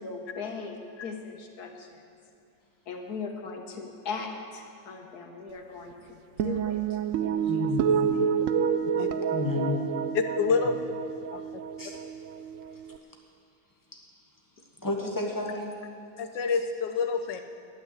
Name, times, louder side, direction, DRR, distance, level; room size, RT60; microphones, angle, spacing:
voice 1, 0.0-2.0 2.9-6.8 7.2-7.9 9.7-9.8, left 4 dB, 65° left, 3 dB, 1.7 m, -39 dB
sound 1, 6.4-13.0, right 7 dB, 70° right, 0.8 m, -28 dB
voice 2, 7.5-8.2 9.3-9.8 11.8-12.0 13.9-14.0 14.8-15.7, left 3 dB, 15° left, 0 dB, 1.2 m, -31 dB
voice 3, 10.1-10.8 11.3-11.6 16.2-17.4, left 5 dB, 90° left, 7 dB, 1.5 m, -27 dB
11.0 x 9.3 x 7.9 m, 2.4 s
omnidirectional pair, 1.9 m